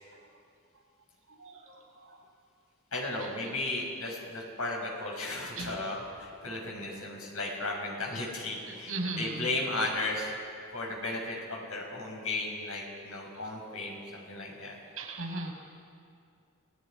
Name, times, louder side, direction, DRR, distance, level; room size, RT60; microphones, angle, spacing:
voice 1, 1.3-2.2 3.2-3.6 5.6-5.8 6.4-6.6 8.7-9.5 12.9-13.1 15.0-15.5, right 2 dB, 70° right, 2 dB, 5.6 m, -39 dB
voice 2, 2.9-10.3 10.7-14.8, left 2 dB, 85° left, -1 dB, 5.8 m, -35 dB
29.0 x 19.5 x 5.1 m, 2.4 s
head